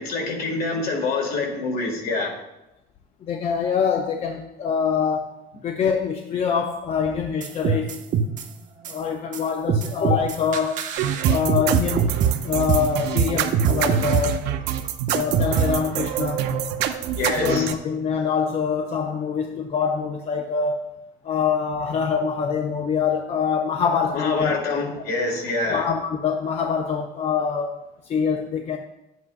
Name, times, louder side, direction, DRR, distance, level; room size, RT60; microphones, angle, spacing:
voice 1, 0.0-2.3 17.2-17.7 24.1-25.9, left 3 dB, 60° left, 1 dB, 1.9 m, -25 dB
voice 2, 3.2-5.4 5.6-8.0 8.9-10.8 11.3-12.1 12.4-14.5 15.1-16.5 17.4-20.9 21.2-24.6 25.7-27.7 28.0-28.8, left 6 dB, 40° left, 3 dB, 0.5 m, -24 dB
sound 1, 7.4-8.4 8.8-8.9 9.3-9.4 9.7-12.3 12.7-12.8 13.2-15.7, right 7 dB, 45° right, 0.7 m, -21 dB
sound 2, 11.0-17.7, right 10 dB, 80° right, 0.6 m, -26 dB
10.5 x 8.2 x 2.4 m, 0.91 s
cardioid pair, 160°, 17 cm